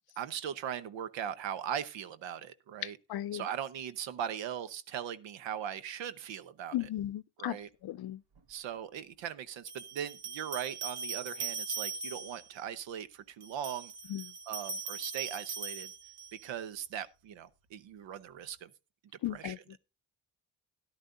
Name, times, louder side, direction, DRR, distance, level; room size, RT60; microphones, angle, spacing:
voice 1, 0.2-3.0 3.3-6.8 7.4-7.7 8.5-13.9 14.5-15.9 16.3-18.7 19.3-19.5, right 9 dB, 85° right, 0.9 m, -39 dB
voice 2, 2.8-3.4 6.7-7.6 7.8-8.2 14.1-14.3 19.2-19.6, left 13 dB, 60° left, 0.6 m, -36 dB
sound 1, 8.4-8.5 9.7-12.5 13.4-16.5, right 5 dB, 60° right, 1.4 m, -40 dB
13.5 x 10.5 x 2.6 m
cardioid pair, 70°, 44 cm